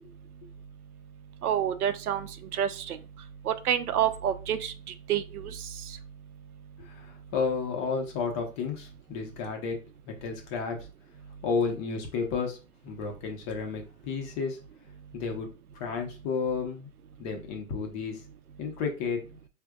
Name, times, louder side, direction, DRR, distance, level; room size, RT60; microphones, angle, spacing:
voice 1, 1.4-3.0 3.4-6.0, right 9 dB, 90° right, 11 dB, 0.6 m, -29 dB
voice 2, 6.8-9.8 10.1-10.8 11.4-12.6 12.8-14.6 15.1-15.5 15.7-16.9 17.2-18.2 18.6-19.2, left 5 dB, 35° left, 3 dB, 1.0 m, -32 dB
5.0 x 2.6 x 2.4 m, 0.32 s
hypercardioid pair, 125°, 43 cm